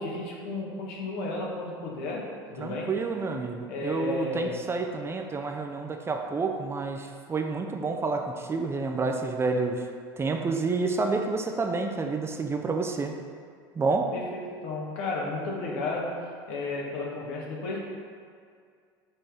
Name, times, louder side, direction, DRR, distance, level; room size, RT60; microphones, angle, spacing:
voice 1, 0.0-2.9 3.7-4.6 14.1-16.2 16.5-17.8, left 2 dB, 70° left, -3 dB, 1.6 m, -33 dB
voice 2, 2.6-9.9 10.2-13.2 13.8-14.1, right 3 dB, 20° right, 4 dB, 0.6 m, -29 dB
6.2 x 5.2 x 3.8 m, 2.2 s
hypercardioid pair, 95°, 12 cm